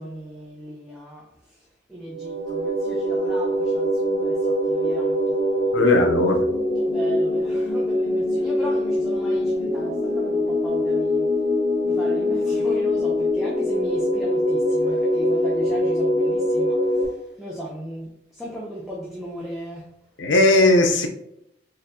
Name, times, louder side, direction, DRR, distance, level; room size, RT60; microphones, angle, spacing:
voice 1, 0.0-5.8 6.8-11.4 11.8-19.9, right 1 dB, ahead, -5 dB, 0.5 m, -36 dB
sound 1, 2.1-17.1, left 1 dB, 40° left, 0.9 m, -23 dB
voice 2, 5.7-6.5 20.2-21.1, left 2 dB, 75° left, 5 dB, 0.6 m, -17 dB
4.1 x 2.6 x 2.6 m, 0.82 s
head